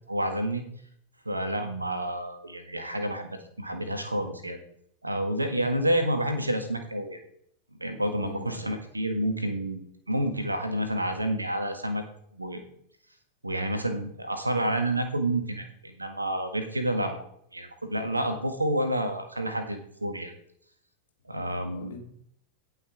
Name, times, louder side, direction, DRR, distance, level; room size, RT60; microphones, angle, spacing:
voice 1, 0.1-0.6 1.2-4.6 5.0-7.2 7.7-12.0 12.3-12.6 13.4-17.2 17.5-20.3 21.3-21.9, right 1 dB, 85° right, 7 dB, 1.6 m, -29 dB
voice 2, 8.2-8.7 21.3-22.0, left 3 dB, 65° left, 2 dB, 2.2 m, -43 dB
17.0 x 5.7 x 3.6 m, 0.67 s
figure-of-eight pair, 90°, 0 cm